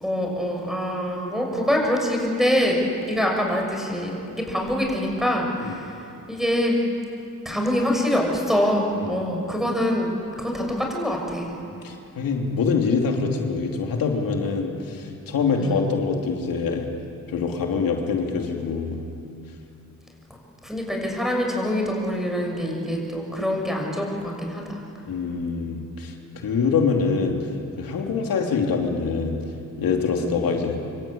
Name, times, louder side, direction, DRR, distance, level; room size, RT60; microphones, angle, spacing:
voice 1, 0.0-6.0 6.3-6.8 7.4-10.1 10.4-11.5 15.6-15.9 20.6-24.7 30.2-30.3, equal, ahead, 0 dB, 6.3 m, -25 dB
voice 2, 11.8-16.9 17.3-19.0 25.1-26.2 26.4-27.5 27.8-29.4 29.8-30.8, left 5 dB, 85° left, 1 dB, 3.0 m, -24 dB
26.5 x 25.5 x 8.7 m, 2.6 s
wide cardioid pair, 140°, 34 cm